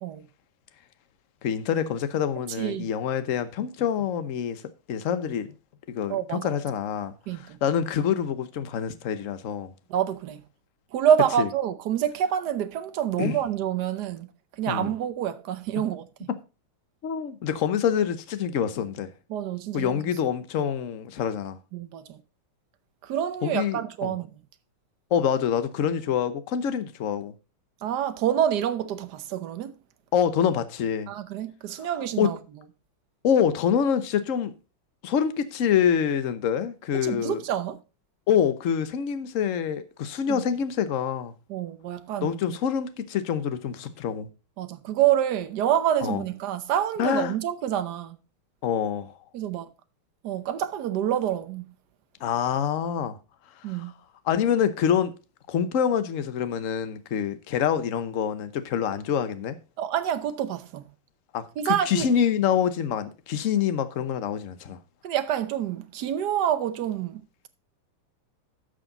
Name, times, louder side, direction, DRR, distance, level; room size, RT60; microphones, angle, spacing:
voice 1, 1.4-4.6 4.9-5.5 5.9-7.1 7.6-9.7 11.4-11.5 13.2-13.4 14.7-14.9 17.0-19.1 19.7-21.6 23.4-24.1 25.1-27.3 30.1-31.1 32.2-32.3 33.2-34.5 35.0-37.4 38.3-41.3 42.2-44.3 46.0-46.2 47.0-47.3 48.6-49.1 52.2-53.2 54.3-55.1 55.5-59.6 61.3-64.8, left 8 dB, 55° left, 0.9 m, -26 dB
voice 2, 2.6-2.9 6.1-6.5 7.3-7.6 9.9-10.5 10.9-14.3 14.6-16.3 19.3-20.0 21.7-22.2 23.0-24.3 27.8-29.8 31.1-32.4 37.0-37.8 40.3-40.4 41.5-42.6 44.6-48.2 49.3-49.7 50.2-51.6 53.6-53.9 59.8-60.9 61.6-62.1 65.0-67.5, right 10 dB, 60° right, 1.2 m, -27 dB
12.0 x 6.4 x 3.9 m
omnidirectional pair, 2.4 m